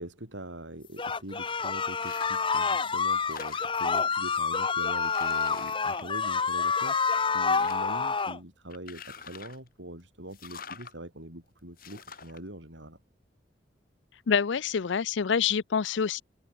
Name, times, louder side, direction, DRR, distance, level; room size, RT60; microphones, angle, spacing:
voice 1, 0.0-13.0, right 1 dB, 85° right, 7.7 m, -43 dB
sound 1, 1.0-8.4, left 5 dB, 25° left, 1.0 m, -28 dB
sound 2, 1.9-2.5 2.9-4.0 4.6-4.7 5.0-6.8 7.1-8.0 8.7-9.7 10.3-10.9 11.8-12.4, left 6 dB, 50° left, 3.9 m, -47 dB
voice 2, 14.3-16.2, left 6 dB, 85° left, 0.5 m, -26 dB
head